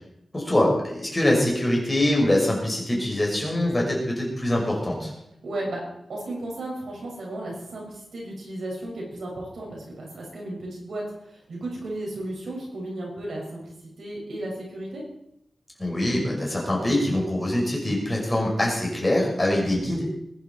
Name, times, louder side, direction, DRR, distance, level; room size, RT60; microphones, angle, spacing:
voice 1, 0.3-5.1 15.8-20.1, left 1 dB, 15° left, -2 dB, 5.7 m, -24 dB
voice 2, 5.4-5.8 6.1-15.0, right 1 dB, 85° right, -2 dB, 6.4 m, -34 dB
20.5 x 11.0 x 4.7 m, 0.79 s
wide cardioid pair, 115°, 0 cm